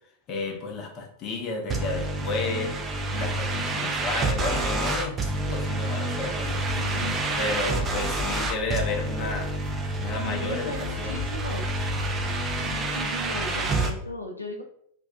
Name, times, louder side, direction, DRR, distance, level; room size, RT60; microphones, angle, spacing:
voice 1, 0.3-2.7 3.1-6.6 7.4-9.5 10.0-11.2, left 3 dB, 35° left, 2 dB, 0.5 m, -32 dB
sound 1, 1.7-13.9, right 2 dB, 25° right, 0.4 m, -28 dB
sound 2, 6.4-13.1, left 6 dB, 10° left, 1.2 m, -39 dB
voice 2, 6.7-7.2 10.2-11.6 12.6-14.6, left 1 dB, 85° left, 1 dB, 0.4 m, -37 dB
2.5 x 2.1 x 2.4 m, 0.65 s
figure-of-eight pair, 90°, 0 cm